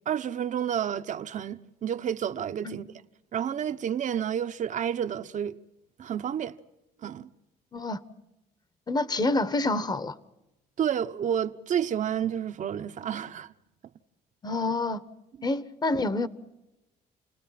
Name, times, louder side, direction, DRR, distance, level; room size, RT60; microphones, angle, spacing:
voice 1, 0.1-2.9 3.3-5.6 6.0-6.6 7.0-7.3 10.8-13.5, right 9 dB, 45° right, 1.0 m, -30 dB
voice 2, 8.9-10.1 14.4-15.0 15.4-16.3, left 2 dB, 25° left, 1.2 m, -27 dB
29.5 x 20.0 x 5.9 m
cardioid pair, 110°, 17 cm